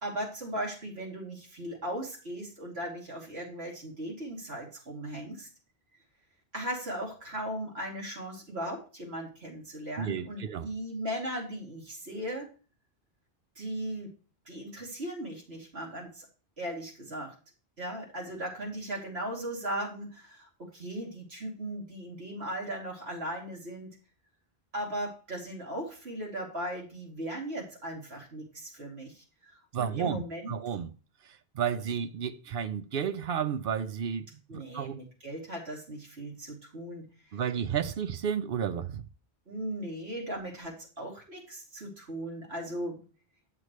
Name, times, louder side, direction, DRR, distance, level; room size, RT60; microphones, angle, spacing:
voice 1, 0.0-5.5 6.5-12.5 13.6-14.1 14.5-16.3 16.6-17.3 17.8-23.9 24.7-30.6 34.5-37.4 39.5-43.0, right 1 dB, 90° right, 2.9 m, -38 dB
voice 2, 10.0-10.7 29.7-30.9 31.6-35.0 37.3-39.0, right 8 dB, 65° right, 0.8 m, -32 dB
8.1 x 7.8 x 3.1 m
omnidirectional pair, 1.0 m